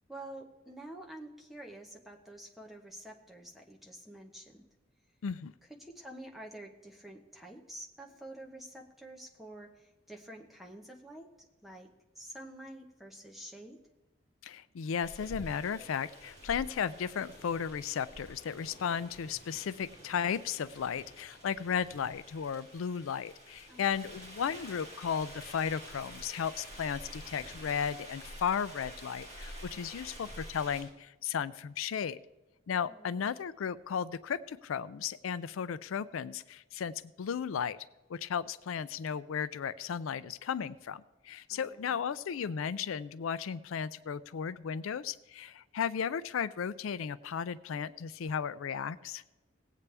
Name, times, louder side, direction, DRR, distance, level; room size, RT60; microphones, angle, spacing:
voice 1, 0.1-4.7 5.6-11.9 12.2-13.8 23.7-24.2 32.9-33.3 41.5-42.0, right 1 dB, ahead, 1 dB, 1.0 m, -48 dB
voice 2, 5.2-5.5 14.4-32.2 32.7-37.8 38.1-49.2, left 7 dB, 85° left, 16 dB, 0.4 m, -35 dB
sound 1, 15.0-30.8, equal, 35° right, 4.1 m, -49 dB
18.5 x 8.3 x 3.4 m, 1.1 s
head